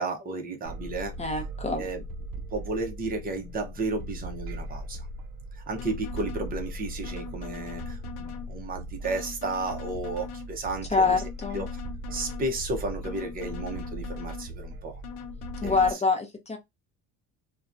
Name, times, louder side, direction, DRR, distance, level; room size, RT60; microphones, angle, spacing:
voice 1, 0.0-1.1 1.7-2.0 2.5-5.1 5.5-11.2 11.5-11.8 12.1-15.0 15.6-16.0, right 3 dB, 25° right, 0.7 m, -33 dB
sound 1, 0.7-15.9, right 1 dB, 70° right, 0.5 m, -39 dB
voice 2, 1.2-1.9 10.9-11.6 15.6-16.6, left 4 dB, 20° left, 0.6 m, -25 dB
sound 2, 5.8-6.5 7.0-8.5 9.0-10.5 11.0-12.5 13.0-14.5 15.0-15.9, left 9 dB, 90° left, 0.7 m, -41 dB
2.6 x 2.2 x 2.4 m
cardioid pair, 140°, 37 cm